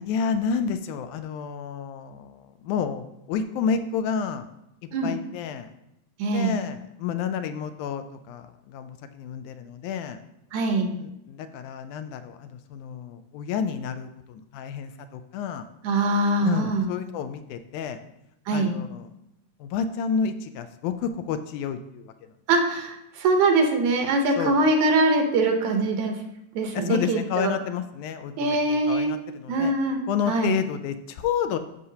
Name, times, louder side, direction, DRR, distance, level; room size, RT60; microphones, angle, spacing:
voice 1, 0.1-4.5 5.0-5.7 6.3-10.2 11.0-15.7 16.4-18.0 18.5-19.1 19.6-22.1 24.4-24.6 26.7-29.7 30.1-31.6, left 7 dB, 80° left, 9 dB, 1.9 m, -30 dB
voice 2, 6.2-6.6 10.5-10.9 15.8-16.9 18.5-18.7 22.5-26.2 26.5-27.5 28.4-29.1 29.5-30.0 30.3-30.6, right 2 dB, 70° right, 4 dB, 2.1 m, -23 dB
12.5 x 5.6 x 2.8 m, 0.86 s
omnidirectional pair, 3.6 m